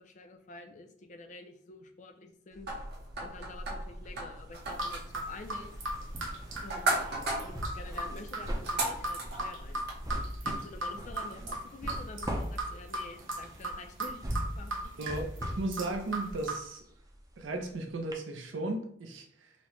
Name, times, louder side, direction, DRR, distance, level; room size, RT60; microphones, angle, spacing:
voice 1, 0.0-2.7 3.2-5.7 6.6-7.0 7.4-9.8 10.4-14.9, left 2 dB, 40° left, 0.4 m, -48 dB
sound 1, 2.5-3.6 3.9-17.7 18.1-18.2, equal, 20° right, 0.5 m, -41 dB
sound 2, 2.7-10.0, right 2 dB, 55° right, 0.9 m, -37 dB
sound 3, 4.5-16.6, right 2 dB, 90° right, 1.0 m, -38 dB
voice 2, 15.0-16.8 17.4-19.5, right 2 dB, 75° right, 0.5 m, -36 dB
4.1 x 2.1 x 3.0 m
head